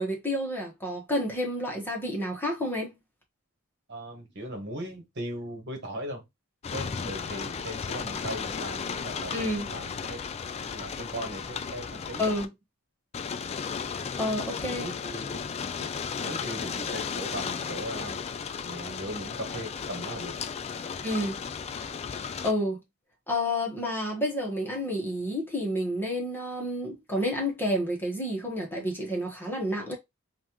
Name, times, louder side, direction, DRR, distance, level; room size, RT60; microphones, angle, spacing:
voice 1, 0.0-2.9 9.3-9.7 12.2-12.5 13.9-14.9 21.0-21.4 22.4-22.8 23.3-29.9, equal, 10° left, 1.2 m, -30 dB
voice 2, 3.9-6.2 6.7-10.2 10.5-12.3 14.7-15.4 15.8-18.2 18.6-20.3, right 1 dB, 55° right, 1.3 m, -38 dB
sound 1, 6.6-12.5 13.1-22.5, left 6 dB, 30° left, 0.3 m, -35 dB
5.3 x 2.5 x 3.0 m
head